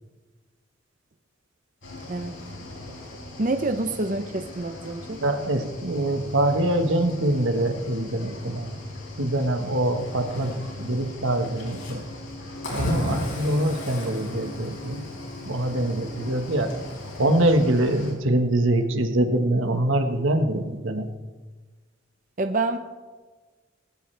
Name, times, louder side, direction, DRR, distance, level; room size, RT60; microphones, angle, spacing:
Cricket / Waves surf, 1.8-18.1, left 1 dB, 90° left, 4.8 m, -37 dB
voice 1, 3.4-5.2 22.4-22.8, right 2 dB, 40° right, 7 dB, 0.7 m, -27 dB
voice 2, 5.2-8.7 9.2-12.0 12.7-15.0 15.4-16.7 17.2-21.1, right 1 dB, 85° right, 6 dB, 1.5 m, -24 dB
19.0 x 17.0 x 3.4 m, 1.3 s
head